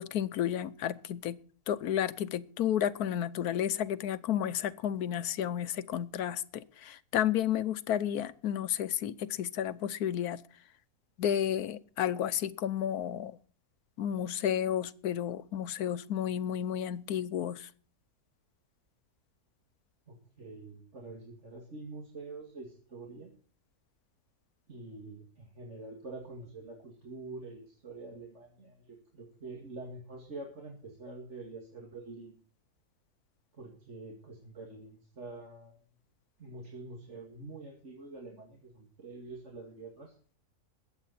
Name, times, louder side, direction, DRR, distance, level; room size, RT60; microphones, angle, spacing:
voice 1, 0.0-1.4 1.7-10.4 11.2-13.4 14.0-17.7, left 10 dB, 80° left, 1.3 m, -32 dB
voice 2, 20.1-23.3 24.7-32.3 33.5-35.8 36.4-40.1, right 3 dB, 50° right, 2.6 m, -46 dB
21.0 x 8.2 x 4.2 m
omnidirectional pair, 1.6 m